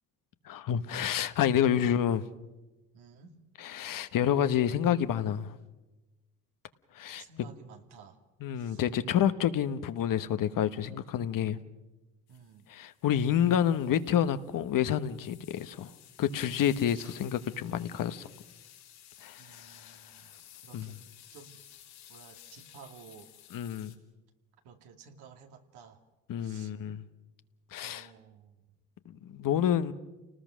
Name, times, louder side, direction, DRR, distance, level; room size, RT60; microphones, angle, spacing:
voice 1, 0.4-2.2 3.6-5.5 6.9-7.5 8.4-11.6 12.7-15.9 16.2-18.3 19.2-19.9 20.7-20.9 23.5-23.9 26.3-27.0 27.7-28.1 29.3-29.9, left 9 dB, 55° left, 1.2 m, -28 dB
voice 2, 2.9-3.4 7.2-8.2 8.6-8.8 12.3-12.7 19.4-20.3 20.6-21.0 21.3-21.6 22.1-23.3 24.6-26.0 26.4-26.7 27.8-28.6, right 6 dB, 75° right, 2.4 m, -53 dB
sound 1, 12.3-24.0, left 11 dB, 75° left, 3.4 m, -55 dB
29.5 x 19.5 x 6.3 m
supercardioid pair, 75°, 39 cm